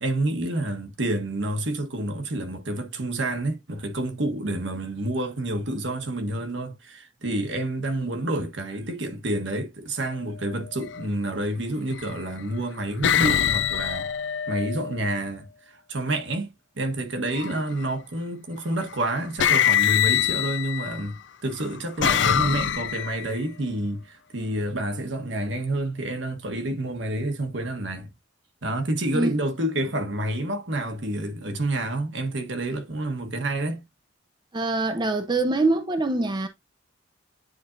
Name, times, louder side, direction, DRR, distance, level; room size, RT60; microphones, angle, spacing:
voice 1, 0.0-14.1 14.5-28.1 28.6-33.8, right 1 dB, 70° right, 1.4 m, -29 dB
sound 1, 10.8-11.0 11.9-12.4 13.0-15.1 17.3-17.8 18.9-19.0 19.4-21.0 21.6-23.3, left 9 dB, 65° left, 0.5 m, -24 dB
voice 2, 34.5-36.5, right 2 dB, 25° right, 0.6 m, -24 dB
9.5 x 4.2 x 2.6 m
head